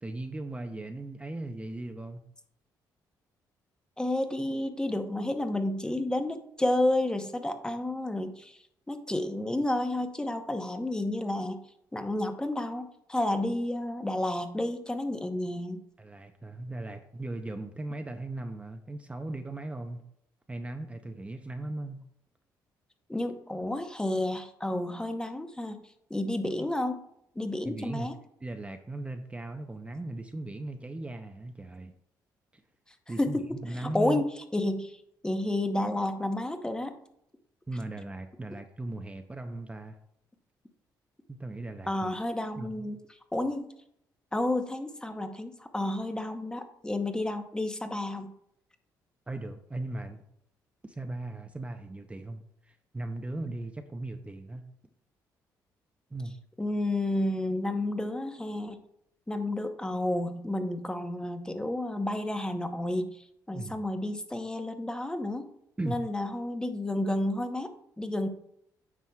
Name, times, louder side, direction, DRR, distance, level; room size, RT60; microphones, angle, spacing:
voice 1, 0.0-2.2 16.0-20.0 20.5-22.0 27.6-28.1 28.4-31.9 32.5-32.6 33.1-34.2 37.7-40.0 41.3-42.1 42.6-42.8 49.3-50.2 50.8-54.6 56.1-56.4 63.5-63.8 65.8-66.0, right 2 dB, 15° right, 6 dB, 0.6 m, -38 dB
voice 2, 4.0-11.6 11.9-15.8 23.1-25.8 26.1-27.0 27.3-28.1 33.1-37.0 41.9-43.7 44.3-48.3 56.6-58.8 59.3-65.5 65.9-68.3, left 1 dB, 10° left, 7 dB, 0.8 m, -31 dB
9.4 x 6.0 x 2.3 m, 0.74 s
cardioid pair, 85°, 7 cm